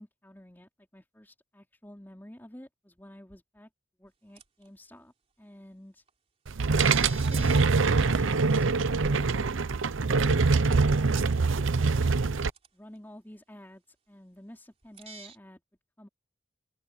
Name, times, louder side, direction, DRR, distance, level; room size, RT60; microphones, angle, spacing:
voice 1, 0.0-3.7 4.0-6.0 6.9-9.5 10.0-12.2 12.7-15.6 16.0-16.1, equal, 10° left, 4.1 m, -50 dB
sound 1, 4.4-4.7 6.1-6.2 6.7-7.7 8.0-8.1 10.0-10.1 11.3-11.7 12.1-12.2 12.6-12.7 15.0-15.4, right 4 dB, 30° right, 3.3 m, -45 dB
sound 2, 6.5-12.5, right 4 dB, 85° right, 0.7 m, -24 dB
open air
head